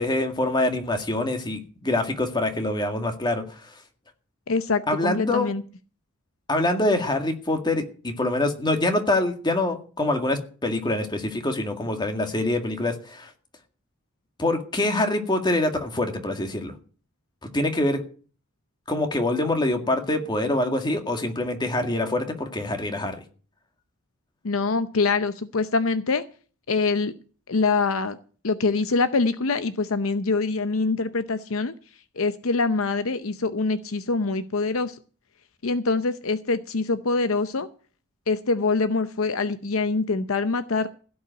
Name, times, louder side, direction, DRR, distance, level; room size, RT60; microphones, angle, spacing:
voice 1, 0.0-3.7 4.9-5.5 6.5-13.3 14.4-16.7 17.5-18.0 18.9-23.2, left 2 dB, 20° left, 5 dB, 2.0 m, -25 dB
voice 2, 4.5-5.6 24.4-26.2 26.7-27.1 27.5-28.2 28.4-31.7 32.2-35.0 35.6-37.7 38.3-40.9, left 3 dB, 70° left, 12 dB, 0.7 m, -24 dB
16.0 x 5.5 x 9.0 m, 0.40 s
head